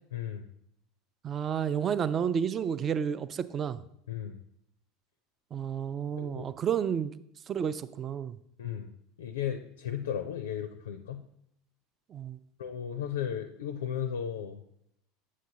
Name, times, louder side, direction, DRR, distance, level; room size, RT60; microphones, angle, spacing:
voice 1, 0.1-0.5 4.1-4.4 6.2-6.5 8.6-8.9 9.2-11.2 12.6-14.6, left 9 dB, 65° left, 8 dB, 0.4 m, -35 dB
voice 2, 1.2-3.8 5.5-7.1 7.5-8.4 12.1-12.4, right 8 dB, 30° right, 15 dB, 0.3 m, -31 dB
8.2 x 7.4 x 2.8 m, 0.74 s
figure-of-eight pair, 75°, 0 cm